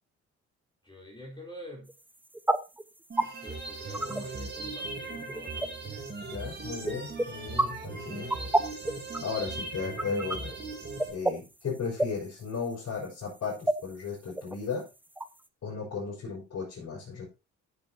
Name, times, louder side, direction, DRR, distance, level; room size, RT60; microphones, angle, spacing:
voice 1, 0.8-1.9 3.4-6.2, equal, 15° left, -4 dB, 4.4 m, -46 dB
sound 1, 1.9-15.5, right 1 dB, 5° right, 0.7 m, -32 dB
sound 2, 3.1-11.1, right 3 dB, 35° right, 3.1 m, -39 dB
voice 2, 6.3-8.4 9.2-10.6 11.1-14.9 15.6-17.3, left 5 dB, 60° left, -8 dB, 5.8 m, -35 dB
14.0 x 7.5 x 2.9 m, 0.28 s
cardioid pair, 90°, 30 cm